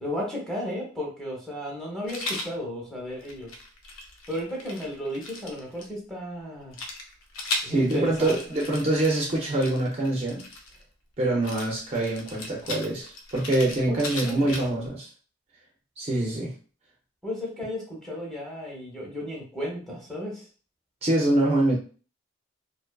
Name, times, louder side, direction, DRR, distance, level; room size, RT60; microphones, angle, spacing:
voice 1, 0.0-3.5 4.3-6.8 7.6-8.4 13.9-14.6 17.2-20.5, equal, ahead, -4 dB, 0.7 m, -34 dB
Rattle, 2.1-2.5 3.2-5.8 6.7-10.8 11.4-14.9, left 2 dB, 90° left, 0.5 m, -37 dB
voice 2, 7.6-10.4 11.2-15.1 16.0-16.5 21.0-21.8, right 1 dB, 30° right, -2 dB, 0.4 m, -25 dB
2.5 x 2.3 x 2.2 m, 0.39 s
head